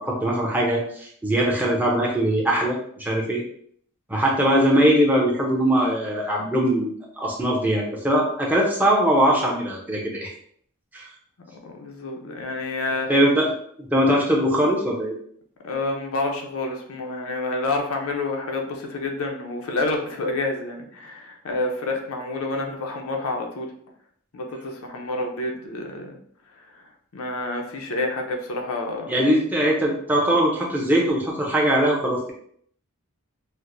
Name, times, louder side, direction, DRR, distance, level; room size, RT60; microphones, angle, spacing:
voice 1, 0.0-3.4 4.1-10.3 10.9-11.1 13.1-13.5 13.9-15.1 29.1-32.3, right 1 dB, 10° right, -3 dB, 0.6 m, -21 dB
voice 2, 11.6-13.1 15.6-23.7 24.3-26.2 26.7-26.8 27.1-29.1, left 2 dB, 70° left, 2 dB, 0.5 m, -28 dB
4.3 x 2.0 x 2.5 m, 0.63 s
head